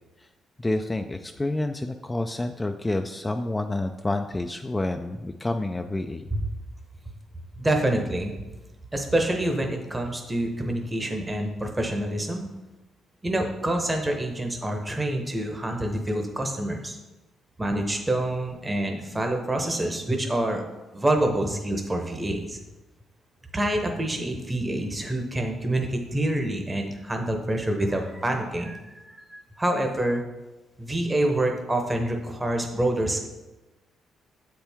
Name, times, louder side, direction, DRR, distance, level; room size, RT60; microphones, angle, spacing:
voice 1, 0.6-6.3, left 2 dB, 15° left, 6 dB, 0.3 m, -28 dB
voice 2, 7.6-8.3 8.9-12.4 13.2-17.0 17.6-20.6 20.9-22.6 23.5-30.2 30.8-33.3, right 1 dB, 15° right, 3 dB, 0.8 m, -27 dB
7.5 x 4.5 x 3.5 m, 1.1 s
cardioid pair, 90°, 0 cm